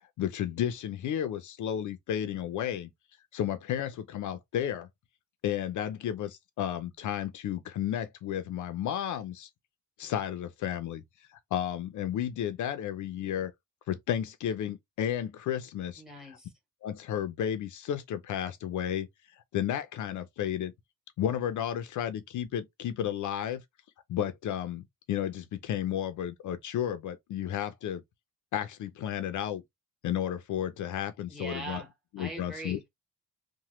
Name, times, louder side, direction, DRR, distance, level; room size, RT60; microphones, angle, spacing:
voice 1, 0.2-2.9 3.3-4.9 5.4-9.5 10.0-11.0 11.3-13.5 13.9-16.0 16.8-19.1 19.5-20.7 21.2-23.6 24.1-28.0 28.5-29.6 30.0-31.8 32.2-32.8, left 10 dB, 60° left, 0.4 m, -32 dB
voice 2, 16.0-16.5 31.3-32.9, right 2 dB, ahead, 0.9 m, -42 dB
2.9 x 2.1 x 3.0 m
cardioid pair, 150°, 33 cm